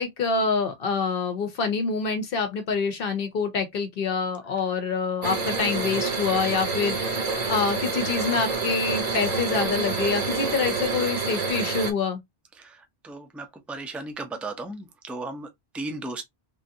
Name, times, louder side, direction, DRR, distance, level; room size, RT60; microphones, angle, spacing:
voice 1, 0.0-12.2, left 5 dB, 65° left, 0.8 m, -26 dB
sound 1, 5.2-11.9, right 3 dB, 45° right, 0.8 m, -27 dB
voice 2, 12.6-15.5 15.7-16.2, right 2 dB, ahead, 0.4 m, -36 dB
3.3 x 2.6 x 2.6 m
omnidirectional pair, 1.1 m